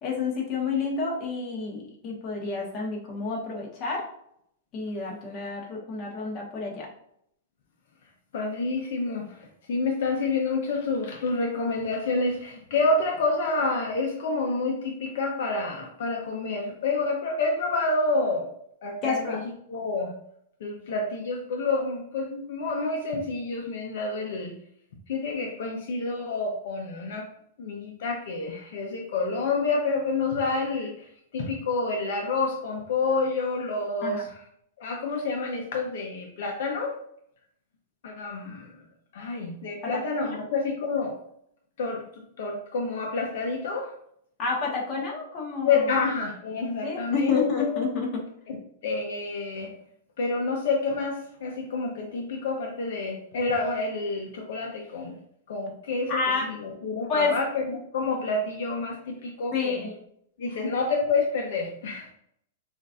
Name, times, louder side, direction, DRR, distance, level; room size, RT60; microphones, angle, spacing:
voice 1, 0.0-4.0 4.7-6.9 19.0-19.4 34.0-34.2 44.4-45.7 46.8-48.1 56.1-56.4 57.1-57.3 59.5-60.0, left 4 dB, 30° left, -2 dB, 1.3 m, -29 dB
voice 2, 8.3-18.5 18.8-19.4 19.7-20.1 20.6-24.5 25.1-27.3 27.6-34.4 34.8-36.9 38.0-38.8 39.1-41.1 41.8-43.9 45.6-47.8 48.5-48.6 48.8-49.7 50.2-55.2 55.5-59.8 60.4-62.1, left 3 dB, 65° left, 1 dB, 0.7 m, -28 dB
6.2 x 2.6 x 2.5 m, 0.71 s
hypercardioid pair, 155°, 0 cm